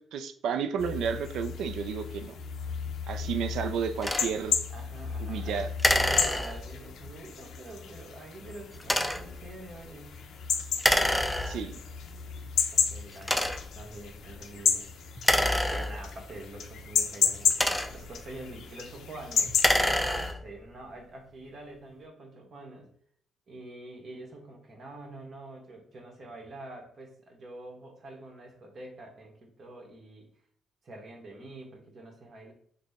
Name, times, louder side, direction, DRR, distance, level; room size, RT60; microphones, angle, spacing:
voice 1, 0.0-2.4 3.1-4.6 5.2-5.7 11.5-11.8, right 7 dB, 75° right, 9 dB, 0.3 m, -32 dB
sound 1, 0.8-20.3, left 7 dB, 75° left, 0.4 m, -33 dB
sound 2, 4.0-4.3 5.8-6.8 8.8-9.4 10.8-11.8 12.5-12.6 13.2-13.8 15.2-16.3 17.3-18.2 19.5-20.5, left 1 dB, 5° left, 0.3 m, -27 dB
voice 2, 4.7-5.7 5.9-10.3 11.0-11.3 12.4-13.4 13.7-15.2 15.5-19.5 20.0-22.9 23.5-30.3 30.8-32.5, right 2 dB, 50° right, 1 dB, 1.1 m, -46 dB
3.9 x 2.1 x 3.5 m, 0.62 s
cardioid pair, 90°, 0 cm